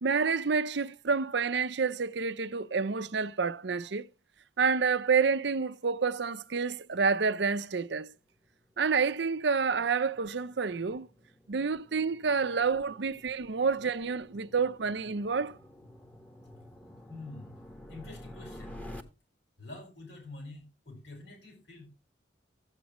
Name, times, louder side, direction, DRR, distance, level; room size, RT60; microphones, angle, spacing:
voice 1, 0.0-4.1 4.6-8.1 8.8-11.1 11.5-15.6, right 5 dB, 60° right, 0.6 m, -29 dB
sound 1, 7.9-19.0, left 1 dB, 10° left, 1.1 m, -51 dB
voice 2, 17.1-17.6 17.9-18.8 19.6-21.9, left 2 dB, 65° left, 5.3 m, -46 dB
14.0 x 8.3 x 3.0 m
head